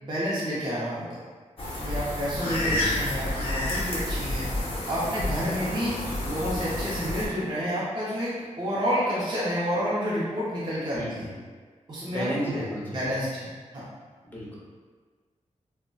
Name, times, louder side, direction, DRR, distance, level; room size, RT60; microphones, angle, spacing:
voice 1, 0.0-1.2 1.8-4.5 4.9-6.0 6.2-11.3 11.9-12.6 12.9-13.8, equal, 35° right, -8 dB, 0.5 m, -29 dB
sound 1, 1.6-7.3, left 1 dB, 45° left, 0.7 m, -30 dB
voice 2, 2.4-3.2 10.9-11.3 12.1-13.1 14.2-14.6, equal, 15° left, -6 dB, 0.6 m, -33 dB
3.8 x 2.1 x 2.2 m, 1.5 s
wide cardioid pair, 165°, 13 cm